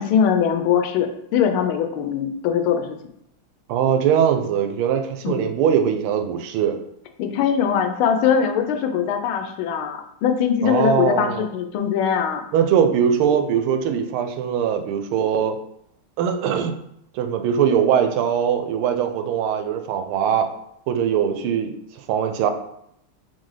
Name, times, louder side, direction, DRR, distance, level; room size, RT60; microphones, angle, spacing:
voice 1, 0.0-3.0 5.2-5.5 7.2-12.4, left 7 dB, 80° left, 6 dB, 1.4 m, -21 dB
voice 2, 3.7-6.8 10.6-11.5 12.5-15.6 16.2-16.8 17.1-20.5 20.9-21.7 22.1-22.5, right 8 dB, 90° right, 6 dB, 1.5 m, -21 dB
4.3 x 3.7 x 3.2 m, 0.76 s
omnidirectional pair, 2.3 m